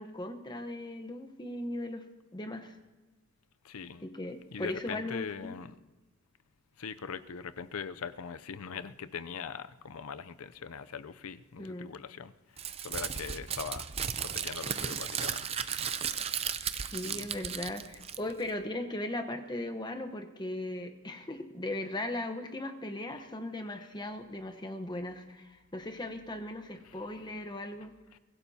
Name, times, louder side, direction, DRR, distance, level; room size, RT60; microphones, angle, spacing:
voice 1, 0.0-2.0 2.3-2.7 4.0-5.6 11.6-11.9 16.9-27.9, left 1 dB, 20° left, 6 dB, 1.0 m, -38 dB
voice 2, 3.6-4.1 4.5-5.7 6.8-12.3 12.8-13.9 14.2-15.5 15.8-16.2 17.0-17.3 28.1-28.2, left 6 dB, 70° left, 13 dB, 0.6 m, -41 dB
Crumpling crinkling, 12.6-18.5, right 8 dB, 25° right, 0.5 m, -35 dB
23.5 x 16.0 x 2.8 m, 1.2 s
head